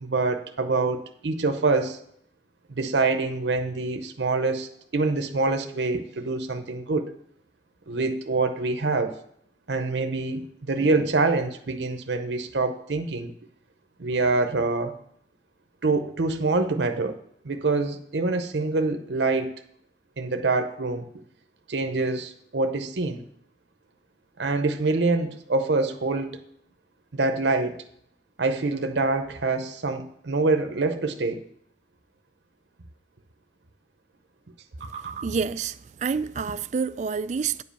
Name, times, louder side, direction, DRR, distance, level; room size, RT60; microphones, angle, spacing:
voice 1, 0.0-2.0 2.7-7.1 7.9-9.1 9.7-13.3 14.0-14.9 15.8-17.2 17.4-19.5 20.2-21.0 21.7-23.2 24.4-26.4 27.1-27.8 28.4-31.4 34.8-35.2, right 3 dB, 75° right, 0.7 m, -25 dB
voice 2, 34.9-37.6, right 5 dB, 40° right, 0.3 m, -28 dB
9.5 x 5.2 x 6.8 m
head